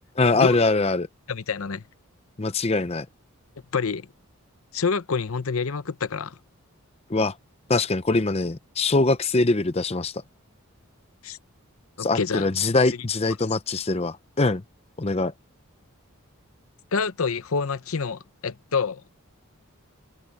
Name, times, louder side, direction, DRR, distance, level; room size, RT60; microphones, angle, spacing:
voice 1, 0.2-1.1 2.4-3.1 7.1-7.3 7.7-10.1 12.0-14.6 15.0-15.3, left 3 dB, 25° left, 0.6 m, -23 dB
voice 2, 1.3-1.8 3.7-4.1 4.7-6.4 11.2-11.4 12.0-12.5 16.9-19.0, left 5 dB, 70° left, 0.7 m, -27 dB
head